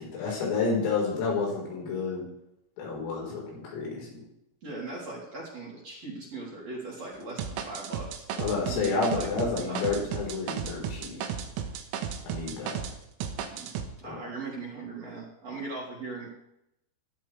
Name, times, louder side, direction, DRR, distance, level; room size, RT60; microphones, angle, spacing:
voice 1, 0.1-2.2 2.8-4.1 8.4-11.2 12.2-12.8 14.0-14.2, left 4 dB, 80° left, -2 dB, 7.0 m, -30 dB
voice 2, 4.6-8.1 8.6-10.0 13.5-13.7 14.0-16.3, right 3 dB, 35° right, -5 dB, 4.1 m, -39 dB
sound 1, 7.4-13.0 13.2-13.9, right 7 dB, 85° right, 3.9 m, -34 dB
17.5 x 12.5 x 3.4 m, 0.80 s
omnidirectional pair, 5.8 m